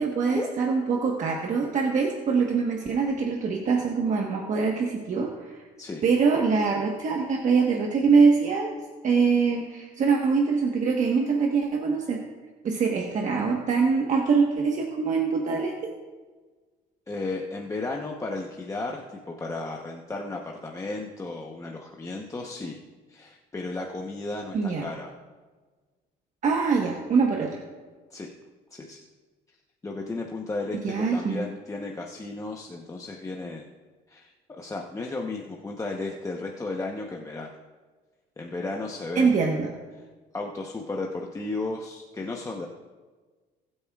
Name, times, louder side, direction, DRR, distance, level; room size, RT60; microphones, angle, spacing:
voice 1, 0.0-5.6 6.0-8.7 9.0-12.2 12.6-15.7 24.5-24.9 26.4-27.6 30.8-31.5 39.1-39.7, right 5 dB, 45° right, 0 dB, 1.2 m, -24 dB
voice 2, 17.1-22.8 23.1-25.1 28.1-28.3 28.7-29.0 29.8-33.6 34.1-37.5 38.4-39.4 40.3-42.7, left 2 dB, 20° left, 0 dB, 0.9 m, -34 dB
20.0 x 8.7 x 2.4 m, 1.4 s
cardioid pair, 110°, 17 cm